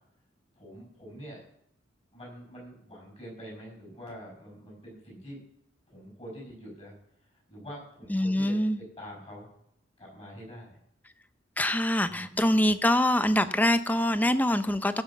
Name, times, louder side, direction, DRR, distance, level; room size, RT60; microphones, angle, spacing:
voice 1, 0.5-1.4 2.1-5.4 5.9-6.9 7.5-9.5 10.0-10.8 12.1-12.8, equal, 30° left, -1 dB, 6.6 m, -45 dB
voice 2, 8.1-8.8 11.6-15.0, left 1 dB, 10° left, 11 dB, 0.5 m, -24 dB
16.5 x 5.9 x 7.2 m, 0.76 s
head